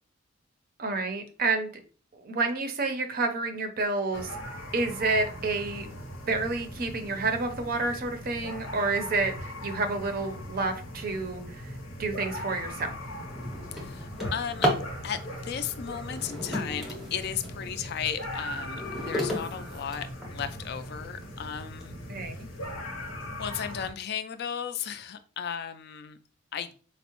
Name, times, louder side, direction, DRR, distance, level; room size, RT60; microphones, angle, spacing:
voice 1, 0.8-1.8 2.1-4.4 4.7-5.9 6.3-11.7 12.0-12.9 22.1-22.5, right 3 dB, 45° right, 6 dB, 0.5 m, -29 dB
sound 1, 4.1-23.9, left 1 dB, 85° left, 0.8 m, -39 dB
Drawer open or close, 13.1-14.9 16.0-17.6 18.1-20.6 21.2-21.3 21.8-21.9 22.3-22.6, equal, ahead, 0.7 m, -33 dB
voice 2, 13.7-14.7 15.0-18.8 19.1-22.0 23.4-26.2 26.5-26.7, left 8 dB, 50° left, 11 dB, 0.3 m, -35 dB
4.3 x 2.0 x 2.9 m, 0.40 s
head